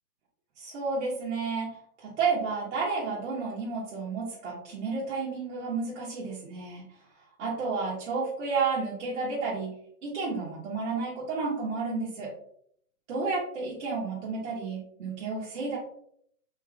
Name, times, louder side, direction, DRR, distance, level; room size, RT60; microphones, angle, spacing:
voice 1, 0.6-6.9 7.4-9.7 10.0-12.3 13.1-15.8, right 4 dB, 55° right, -5 dB, 1.1 m, -31 dB
3.3 x 2.9 x 2.3 m, 0.65 s
hypercardioid pair, 155°, 45 cm